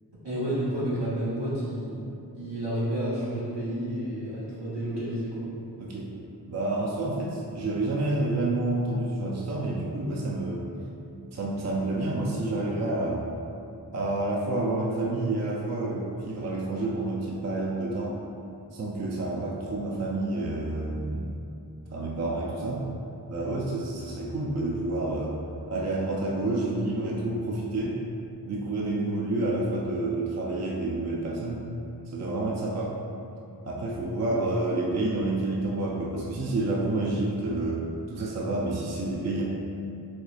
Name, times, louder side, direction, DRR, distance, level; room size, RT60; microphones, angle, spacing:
voice 1, 0.2-2.0 2.3-5.5, right 1 dB, 85° right, -10 dB, 1.3 m, -30 dB
voice 2, 5.8-6.1 6.5-10.7 11.3-13.2 13.9-18.2 18.7-21.3 21.9-22.8 23.3-25.4 25.7-28.0 28.4-31.6 32.1-32.9 33.6-39.4, right 2 dB, 40° right, -3 dB, 0.4 m, -29 dB
4.3 x 2.4 x 2.4 m, 2.7 s
wide cardioid pair, 45°, 41 cm